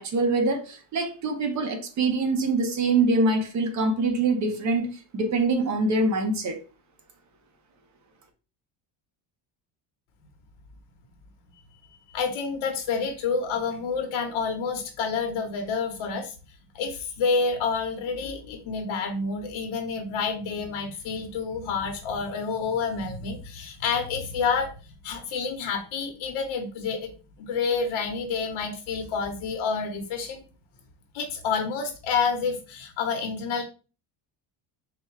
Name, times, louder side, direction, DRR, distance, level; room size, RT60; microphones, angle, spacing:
voice 1, 0.0-6.6, right 3 dB, 35° right, 0.8 m, -24 dB
voice 2, 12.1-16.3 16.7-24.7 25.0-27.1 27.4-30.4 31.1-33.6, left 5 dB, 70° left, 1.0 m, -28 dB
4.0 x 2.2 x 4.6 m
cardioid pair, 170°, 49 cm